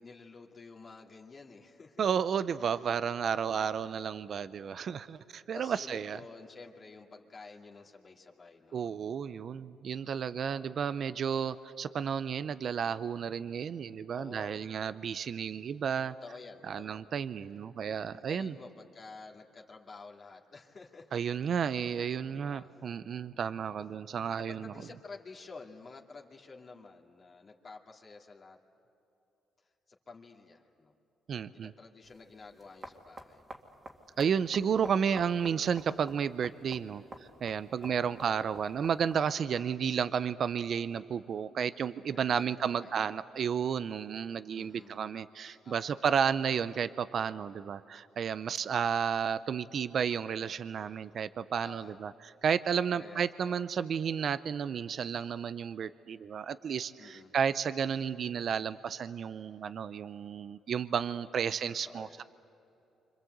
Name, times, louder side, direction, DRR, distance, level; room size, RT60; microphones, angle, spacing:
voice 1, 0.0-2.1 2.6-2.7 3.2-3.5 5.5-8.8 10.4-10.8 14.1-14.7 16.2-17.1 18.1-21.2 21.5-22.7 24.4-28.6 29.9-30.9 31.5-33.5 37.8-38.6 39.5-39.8 42.1-43.1 44.5-45.0 45.6-46.0 51.6-52.0 52.9-53.6 57.0-57.3 61.8-62.2, left 4 dB, 40° left, 1 dB, 2.5 m, -51 dB
voice 2, 2.0-6.2 8.7-16.1 16.6-18.6 21.1-24.7 31.3-31.7 34.2-62.2, right 7 dB, 55° right, 14 dB, 0.6 m, -32 dB
sound 1, 32.0-39.4, right 2 dB, 25° right, 2.2 m, -51 dB
28.5 x 26.0 x 8.0 m, 2.9 s
cardioid pair, 90°, 0 cm